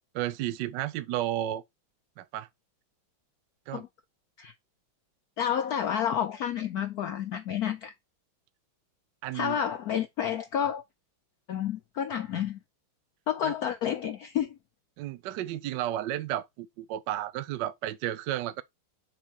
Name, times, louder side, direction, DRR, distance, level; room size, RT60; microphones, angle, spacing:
voice 1, 0.1-1.6 2.2-2.5 3.7-3.8 9.2-9.6 13.4-13.5 15.0-18.6, right 13 dB, 75° right, 1.1 m, -32 dB
voice 2, 5.4-7.9 9.3-10.8 11.5-12.6 13.3-14.6, left 9 dB, 75° left, 0.8 m, -30 dB
6.2 x 4.1 x 4.5 m
omnidirectional pair, 2.3 m